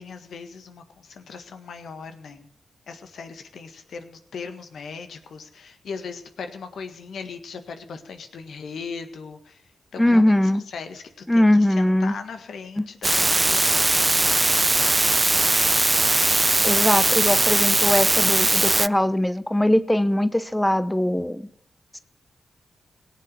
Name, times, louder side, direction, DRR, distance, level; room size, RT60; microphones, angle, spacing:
voice 1, 0.0-2.5 2.9-9.6 9.9-10.2 10.7-11.5 11.8-14.2, left 5 dB, 75° left, 8 dB, 1.7 m, -38 dB
voice 2, 10.0-10.6 11.3-12.1 12.8-12.9 16.6-21.5, left 1 dB, 10° left, 13 dB, 0.9 m, -21 dB
sound 1, 13.0-18.9, right 2 dB, 25° right, 0.5 m, -20 dB
17.5 x 7.7 x 7.5 m, 0.69 s
supercardioid pair, 40°, 0 cm